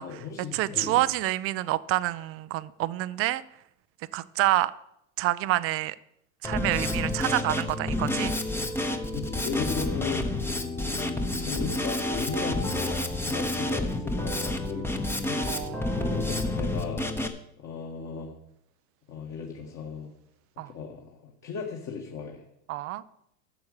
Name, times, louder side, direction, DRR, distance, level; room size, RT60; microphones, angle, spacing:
voice 1, 0.0-1.1 9.1-10.5 10.8-15.4 16.0-17.1 17.6-18.4 19.1-20.1 20.7-22.5, left 6 dB, 35° left, 1.7 m, -37 dB
voice 2, 0.5-3.4 4.1-4.7 5.2-6.0 6.4-8.4 15.5-16.2 20.6-20.7 22.7-23.0, right 16 dB, 30° right, 0.5 m, -28 dB
Drum kit, 6.4-17.3, left 2 dB, 5° left, 0.9 m, -29 dB
12.5 x 7.0 x 6.6 m
hypercardioid pair, 110°, 49 cm